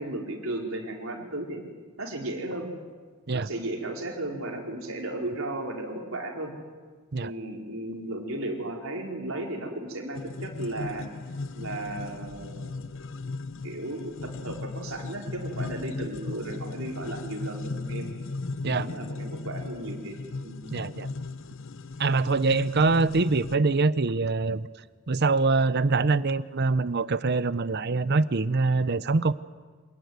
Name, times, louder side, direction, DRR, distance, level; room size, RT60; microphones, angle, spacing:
voice 1, 0.0-1.6 2.0-2.7 3.3-6.5 7.2-11.1 11.5-12.8 13.6-18.1 18.6-20.1 20.4-20.6, right 1 dB, 70° right, 0 dB, 4.7 m, -35 dB
sound 1, 10.1-23.6, left 3 dB, 65° left, 0.8 m, -37 dB
voice 2, 20.7-21.1 22.0-24.7 25.1-29.3, right 3 dB, 50° right, 15 dB, 0.7 m, -24 dB
26.5 x 19.5 x 9.5 m, 1.5 s
head